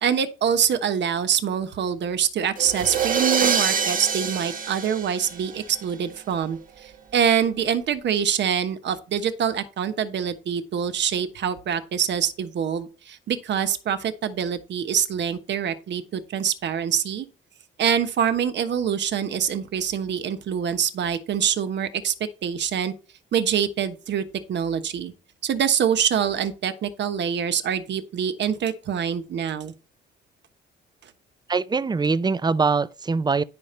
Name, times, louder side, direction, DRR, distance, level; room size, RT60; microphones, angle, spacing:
voice 1, 0.0-17.3 17.8-22.1 22.4-22.9 23.3-25.1 25.4-29.7, right 8 dB, 65° right, 1.2 m, -25 dB
sound 1, 2.6-5.8, right 6 dB, 45° right, 1.1 m, -25 dB
voice 2, 31.5-33.4, right 4 dB, 20° right, 0.5 m, -23 dB
10.5 x 5.2 x 4.4 m
cardioid pair, 90°, 20 cm